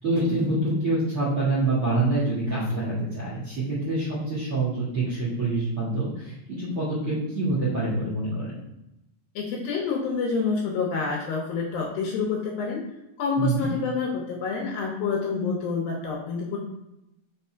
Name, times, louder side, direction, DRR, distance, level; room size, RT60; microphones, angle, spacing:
voice 1, 0.0-8.6 13.4-13.7, right 2 dB, 45° right, -6 dB, 2.0 m, -26 dB
voice 2, 9.4-12.8 13.2-16.6, left 5 dB, 70° left, 0 dB, 2.4 m, -28 dB
6.1 x 4.2 x 4.5 m, 0.90 s
omnidirectional pair, 5.0 m